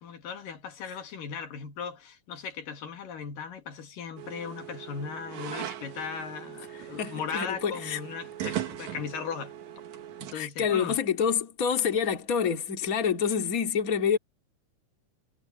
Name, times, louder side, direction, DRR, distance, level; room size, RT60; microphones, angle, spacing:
voice 1, 0.0-9.5 10.2-11.0, left 6 dB, 85° left, 3.9 m, -37 dB
sound 1, 4.2-10.3, right 11 dB, 65° right, 2.6 m, -39 dB
voice 2, 7.0-8.0 10.3-14.2, left 7 dB, 30° left, 2.4 m, -27 dB
omnidirectional pair, 3.8 m